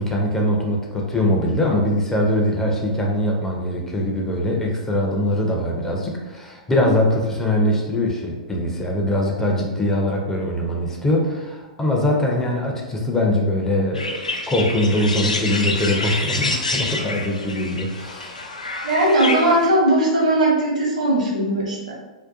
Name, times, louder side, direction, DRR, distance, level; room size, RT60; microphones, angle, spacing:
voice 1, 0.0-18.5, left 1 dB, 10° left, -1 dB, 0.4 m, -22 dB
sound 1, 13.9-19.7, left 2 dB, 80° left, 0.3 m, -27 dB
voice 2, 18.8-21.8, right 1 dB, 75° right, -4 dB, 0.9 m, -18 dB
2.5 x 2.1 x 2.4 m, 1.1 s
figure-of-eight pair, 100°, 4 cm